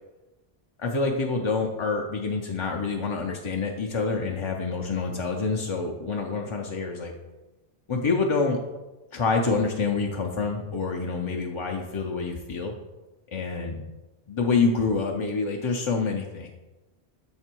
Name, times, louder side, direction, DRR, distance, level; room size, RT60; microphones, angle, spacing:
voice 1, 0.8-7.1 7.9-8.6 9.1-12.7 13.3-13.8 14.3-16.5, left 4 dB, 45° left, 1 dB, 0.4 m, -27 dB
6.7 x 3.3 x 4.4 m, 1.1 s
omnidirectional pair, 1.1 m